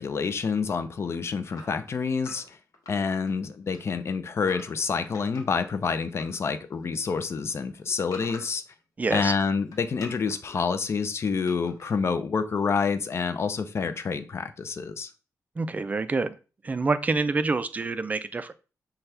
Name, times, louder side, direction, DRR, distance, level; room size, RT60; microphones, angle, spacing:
voice 1, 0.0-2.6 2.9-8.6 9.1-15.1, left 5 dB, 45° left, 0.4 m, -28 dB
sound 1, 1.5-3.4 3.7-6.4 6.7-8.7 9.1-10.6 11.5-12.0, left 3 dB, 70° left, 0.9 m, -47 dB
voice 2, 9.0-9.3 15.6-16.3 16.6-18.5, right 3 dB, 25° right, 0.3 m, -27 dB
5.7 x 2.3 x 3.3 m
wide cardioid pair, 120°, 6 cm